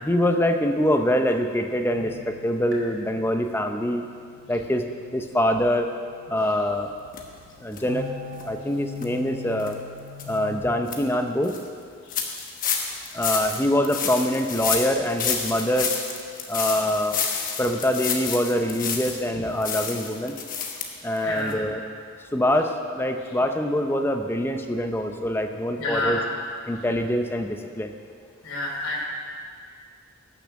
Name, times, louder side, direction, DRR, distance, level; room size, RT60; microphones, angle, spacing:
voice 1, 0.0-4.1 4.5-4.8 5.1-5.9 6.3-6.9 7.6-8.1 8.4-9.7 10.3-11.6 13.1-15.9 16.5-17.2 17.6-20.3 21.0-21.8 22.3-26.2 26.7-27.9, equal, 10° left, 5 dB, 0.6 m, -24 dB
sound 1, 1.9-10.5, left 5 dB, 55° right, 2.6 m, -43 dB
sound 2, 7.1-7.2 7.7-7.8 8.3-8.4 9.0-9.1 9.6-9.7 10.2-10.3 10.7-11.0 11.4-11.6 12.1-19.3 19.6-20.9 21.2-21.3 21.5-21.6, left 6 dB, 40° left, 1.2 m, -29 dB
voice 2, 21.2-21.6 25.8-26.2 28.4-29.0, left 2 dB, 70° left, -2 dB, 3.0 m, -29 dB
16.0 x 6.9 x 6.4 m, 2.1 s
head